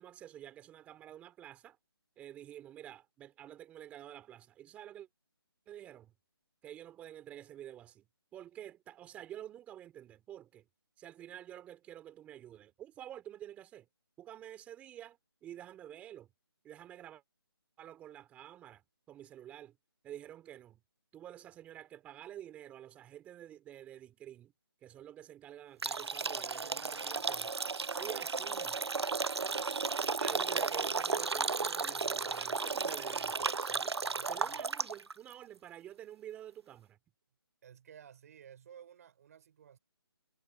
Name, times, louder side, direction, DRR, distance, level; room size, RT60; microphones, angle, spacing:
voice 1, 0.0-1.8 2.2-5.1 5.7-6.1 6.6-8.1 8.3-10.7 11.0-13.9 14.2-16.3 16.6-17.2 17.8-19.8 20.0-20.8 21.1-24.5 24.8-27.5 28.0-28.8 30.0-34.0 34.3-37.0, right 11 dB, 10° right, 3.8 m, -49 dB
sound 1, 25.8-35.1, right 4 dB, 90° right, 0.6 m, -34 dB
voice 2, 34.0-34.7 37.6-39.8, right 8 dB, 35° right, 5.3 m, -55 dB
figure-of-eight pair, 160°, 13 cm